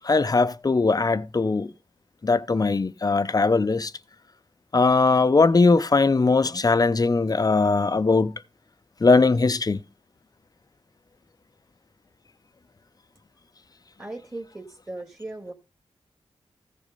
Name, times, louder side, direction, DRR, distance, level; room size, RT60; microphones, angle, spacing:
voice 1, 0.0-1.7 2.2-3.9 4.7-8.3 9.0-9.8, left 3 dB, 35° left, 0.6 m, -20 dB
voice 2, 14.0-15.5, right 2 dB, 20° right, 1.8 m, -37 dB
15.0 x 5.1 x 5.4 m
wide cardioid pair, 90°, 11 cm